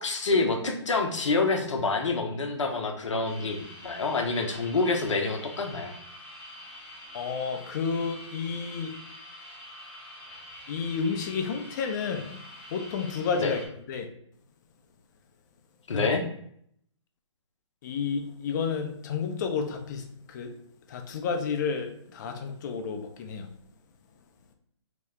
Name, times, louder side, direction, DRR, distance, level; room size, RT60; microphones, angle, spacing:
voice 1, 0.0-5.9 13.4-13.6 15.9-16.2, left 3 dB, 75° left, 3 dB, 0.7 m, -27 dB
sound 1, 3.2-13.7, left 1 dB, 10° left, 0.7 m, -46 dB
voice 2, 7.1-8.9 10.7-12.3 12.7-13.6 13.9-14.1 15.9-16.1 17.8-20.5 20.9-23.5, left 5 dB, 40° left, 5 dB, 0.4 m, -31 dB
2.9 x 2.1 x 3.5 m, 0.66 s
figure-of-eight pair, 135°, 16 cm